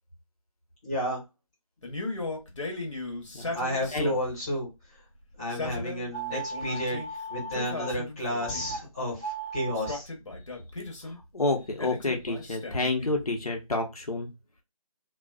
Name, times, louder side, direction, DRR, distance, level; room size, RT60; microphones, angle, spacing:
voice 1, 0.8-1.2 3.5-4.7 5.4-7.0 7.3-10.1, equal, 10° left, -7 dB, 0.9 m, -31 dB
Male speech man speaking, 1.8-4.4 5.3-7.1 7.5-8.8 9.7-11.2 11.8-13.3, left 2 dB, 55° left, 0.9 m, -37 dB
sound 1, 6.1-7.9 8.4-8.8 9.1-10.0, right 3 dB, 30° right, 0.4 m, -37 dB
voice 2, 11.0-14.3, left 2 dB, 90° left, 2 dB, 0.9 m, -29 dB
2.4 x 2.2 x 2.3 m, 0.24 s
figure-of-eight pair, 165°, 19 cm